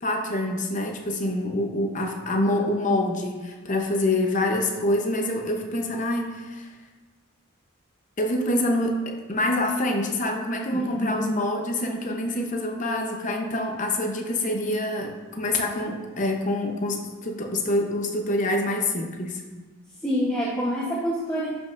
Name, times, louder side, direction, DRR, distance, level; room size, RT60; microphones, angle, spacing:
voice 1, 0.0-6.7 8.2-19.4, left 1 dB, 35° left, 2 dB, 0.7 m, -26 dB
voice 2, 10.7-11.3 20.0-21.5, equal, 5° left, -6 dB, 0.9 m, -27 dB
11.0 x 5.2 x 2.5 m, 1.3 s
head